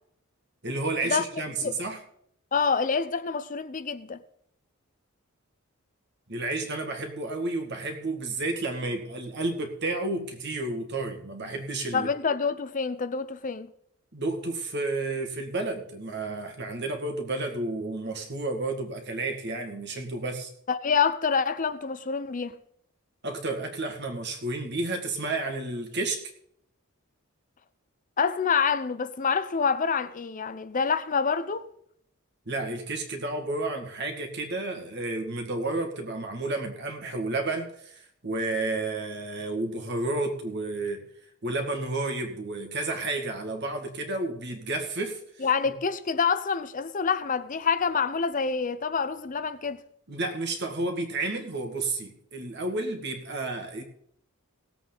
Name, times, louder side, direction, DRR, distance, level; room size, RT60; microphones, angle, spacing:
voice 1, 0.6-2.0 6.3-12.1 14.1-20.5 23.2-26.3 32.5-41.1 41.4-45.2 50.1-53.8, right 2 dB, 55° right, 2.0 m, -31 dB
voice 2, 2.5-4.2 11.9-13.7 20.7-22.6 28.2-31.7 45.4-49.8, left 5 dB, 40° left, 0.6 m, -27 dB
18.0 x 8.1 x 4.0 m
head